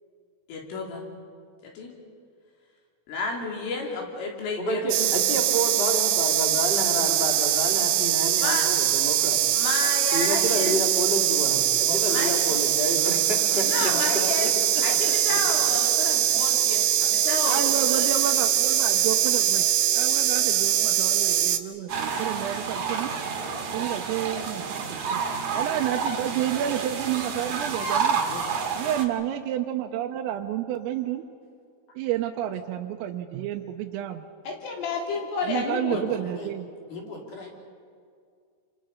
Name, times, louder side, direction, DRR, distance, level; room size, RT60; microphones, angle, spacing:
voice 1, 0.5-1.0 1.6-1.9 3.1-5.1 8.4-8.6 9.5-10.8 12.1-12.4 13.6-14.5 14.8-18.1 34.5-36.1, left 3 dB, 75° left, 0 dB, 5.8 m, -31 dB
voice 2, 4.6-9.4 10.1-11.6 11.9-14.5, equal, 15° left, 0 dB, 2.1 m, -29 dB
sound 1, 4.9-21.6, right 11 dB, 75° right, 2.9 m, -22 dB
voice 3, 11.9-12.3 13.9-15.7 28.2-28.5 35.9-36.5 36.9-37.6, left 2 dB, 45° left, 0 dB, 3.9 m, -38 dB
voice 4, 17.5-23.1 23.7-25.2 25.6-28.2 28.8-31.3 32.0-34.3 35.4-36.7, right 11 dB, 90° right, 2 dB, 3.5 m, -30 dB
sound 2, 21.9-29.0, right 5 dB, 55° right, 2.3 m, -29 dB
28.5 x 25.0 x 5.5 m, 2.2 s
omnidirectional pair, 5.9 m